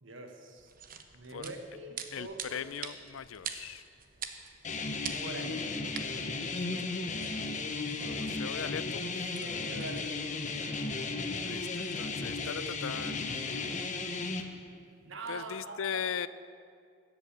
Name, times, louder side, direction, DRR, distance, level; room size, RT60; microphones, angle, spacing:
voice 1, 0.0-2.6 5.2-5.6 6.4-6.9 9.4-10.1 15.0-16.3, right 2 dB, 70° right, 4 dB, 1.6 m, -44 dB
sound 1, 0.6-12.8, right 7 dB, 45° right, 0.9 m, -47 dB
voice 2, 2.1-3.8 8.0-9.0 11.4-13.9 15.3-16.3, left 7 dB, 85° left, 16 dB, 0.5 m, -39 dB
sound 2, 4.6-14.4, left 3 dB, 40° left, 1.0 m, -35 dB
13.5 x 8.2 x 8.9 m, 2.2 s
head